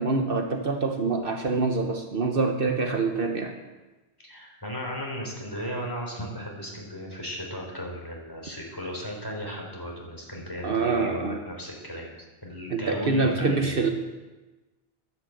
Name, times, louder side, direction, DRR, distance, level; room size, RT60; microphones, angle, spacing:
voice 1, 0.0-3.6 10.6-11.4 12.7-13.9, right 3 dB, 60° right, 4 dB, 1.3 m, -25 dB
voice 2, 4.2-12.1 12.4-13.9, equal, 20° left, -2 dB, 4.0 m, -36 dB
12.0 x 10.5 x 7.8 m, 1.2 s
omnidirectional pair, 1.1 m